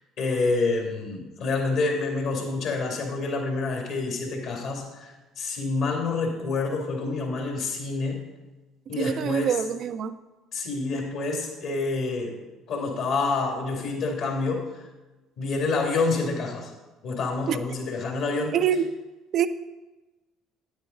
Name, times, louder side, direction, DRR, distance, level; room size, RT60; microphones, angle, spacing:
voice 1, 0.2-8.3 8.9-9.6 10.5-12.4 12.7-14.7 15.4-16.7 17.0-18.6, left 3 dB, 65° left, 1 dB, 2.4 m, -27 dB
voice 2, 9.0-10.1 17.5-17.6 18.5-18.9 19.3-19.5, right 9 dB, 55° right, 11 dB, 0.4 m, -25 dB
9.0 x 8.1 x 3.9 m, 1.1 s
hypercardioid pair, 60°, 0 cm